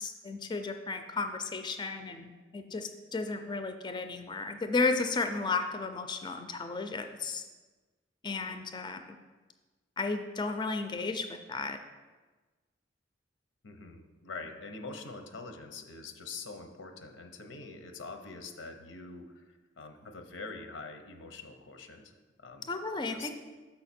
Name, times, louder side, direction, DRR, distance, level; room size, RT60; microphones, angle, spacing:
voice 1, 0.0-7.4 8.2-9.2 10.0-11.8 22.7-23.3, left 3 dB, 25° left, 7 dB, 0.4 m, -33 dB
voice 2, 13.6-22.1 22.4-22.7 23.1-23.3, left 3 dB, 90° left, 6 dB, 0.7 m, -44 dB
6.5 x 5.7 x 4.2 m, 1.3 s
head